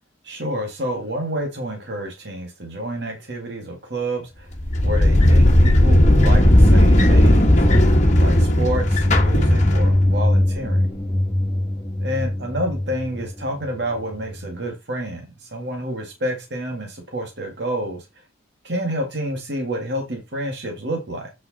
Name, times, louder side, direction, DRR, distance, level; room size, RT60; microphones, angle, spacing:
voice 1, 0.2-4.5 4.8-10.9 12.0-18.1 18.6-21.3, right 1 dB, 60° right, 2.0 m, -29 dB
sound 1, 4.6-10.2, left 1 dB, 35° left, 1.3 m, -15 dB
sound 2, 8.8-14.6, left 1 dB, 5° left, 2.1 m, -22 dB
8.2 x 5.7 x 4.1 m
head